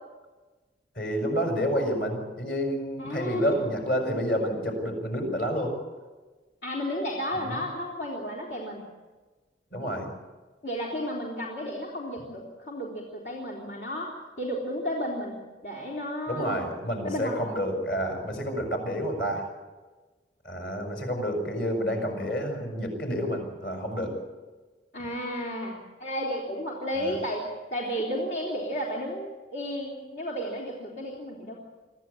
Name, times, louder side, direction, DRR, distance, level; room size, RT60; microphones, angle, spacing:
voice 1, 0.9-5.8 7.3-7.6 9.7-10.1 16.3-19.5 20.4-24.2 26.9-27.2, equal, 60° left, 4 dB, 6.5 m, -29 dB
voice 2, 3.0-3.6 6.6-8.8 10.6-16.6 17.0-17.5 24.9-27.4 27.7-31.5, equal, 75° left, -4 dB, 3.8 m, -33 dB
24.5 x 15.0 x 8.6 m, 1.3 s
head